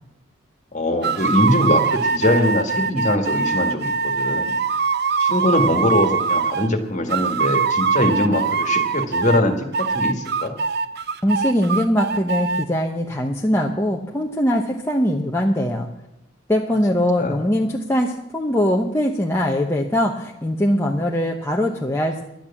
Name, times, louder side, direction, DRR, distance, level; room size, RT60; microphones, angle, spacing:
voice 1, 0.7-4.6 5.2-10.6 17.2-17.4, left 1 dB, 35° left, 5 dB, 1.8 m, -22 dB
sound 1, 1.0-6.7 7.1-9.4 9.7-12.6, right 5 dB, 50° right, 0.6 m, -22 dB
voice 2, 11.2-15.9 16.5-22.2, equal, 10° left, -1 dB, 0.9 m, -21 dB
12.0 x 9.3 x 7.2 m, 0.89 s
head